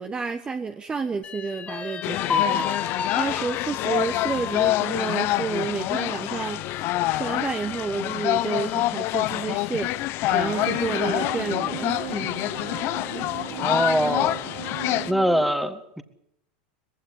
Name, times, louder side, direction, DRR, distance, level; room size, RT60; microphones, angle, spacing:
voice 1, 0.0-9.9 10.3-12.3 13.1-13.3, right 5 dB, 15° right, 7 dB, 1.1 m, -30 dB
sound 1, 1.2-8.9 9.3-9.4 9.8-10.5, left 7 dB, 25° left, 1.5 m, -33 dB
sound 2, 2.0-15.1, left 16 dB, 50° left, 0.8 m, -26 dB
sound 3, 10.3-15.5, right 11 dB, 75° right, 3.9 m, -37 dB
voice 2, 13.5-14.4 15.1-16.0, equal, ahead, 9 dB, 1.8 m, -23 dB
20.5 x 16.0 x 9.8 m, 0.76 s
supercardioid pair, 125°, 5 cm